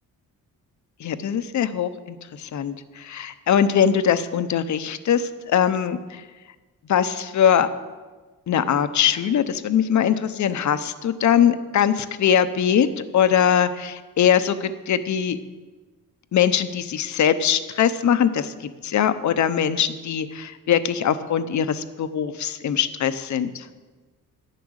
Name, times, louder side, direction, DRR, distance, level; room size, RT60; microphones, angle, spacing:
voice 1, 1.0-6.2 6.9-7.7 8.5-12.9 13.1-15.4 16.3-18.5 18.8-23.7, left 8 dB, 55° left, 12 dB, 0.8 m, -21 dB
11.0 x 8.4 x 6.4 m, 1.3 s
cardioid pair, 85°, 35 cm